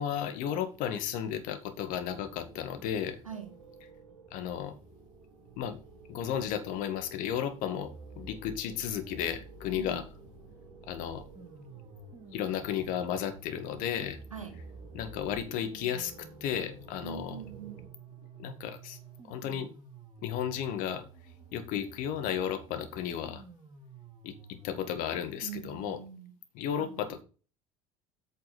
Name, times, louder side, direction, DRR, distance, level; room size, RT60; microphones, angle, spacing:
voice 1, 0.0-3.2 4.3-4.7 5.6-5.8 6.1-10.0 10.9-11.2 12.3-14.2 14.9-17.4 18.4-19.0 19.3-19.7 20.2-21.0 21.5-23.4 24.2-26.0 26.6-27.2, left 9 dB, 55° left, 2.0 m, -34 dB
sound 1, 0.7-17.9, right 3 dB, 65° right, 4.2 m, -54 dB
sound 2, 7.8-25.8, right 3 dB, 25° right, 2.7 m, -51 dB
voice 2, 17.0-17.9 25.4-26.3 26.8-27.2, right 7 dB, 85° right, 1.8 m, -43 dB
8.6 x 6.8 x 5.2 m
figure-of-eight pair, 65°, 17 cm